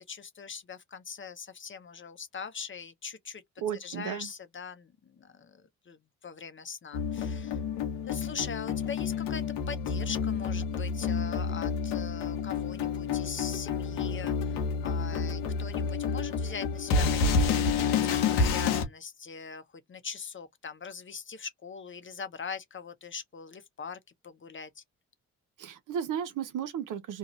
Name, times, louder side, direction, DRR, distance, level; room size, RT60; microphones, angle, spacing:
voice 1, 0.1-7.6 8.1-24.8, left 6 dB, 35° left, 0.7 m, -42 dB
voice 2, 3.6-4.3 25.6-27.2, right 8 dB, 60° right, 0.7 m, -34 dB
sound 1, 6.9-18.8, left 5 dB, 85° left, 0.8 m, -29 dB
2.5 x 2.3 x 3.0 m
hypercardioid pair, 45°, 36 cm